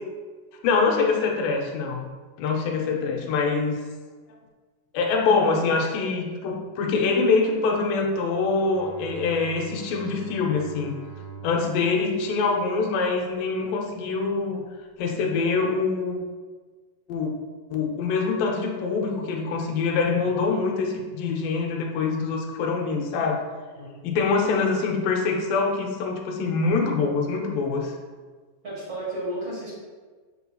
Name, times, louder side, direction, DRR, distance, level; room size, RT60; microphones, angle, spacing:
voice 1, 0.6-2.1 2.4-3.8 4.9-10.9 11.4-14.6 15.0-16.2 17.1-17.3 17.7-23.4 24.0-27.9, left 4 dB, 90° left, 1 dB, 2.5 m, -24 dB
Bowed string instrument, 8.2-13.5, right 4 dB, 70° left, 1.0 m, -44 dB
voice 2, 28.6-29.7, right 1 dB, 45° right, -8 dB, 1.7 m, -33 dB
7.0 x 6.3 x 2.3 m, 1.4 s
omnidirectional pair, 3.8 m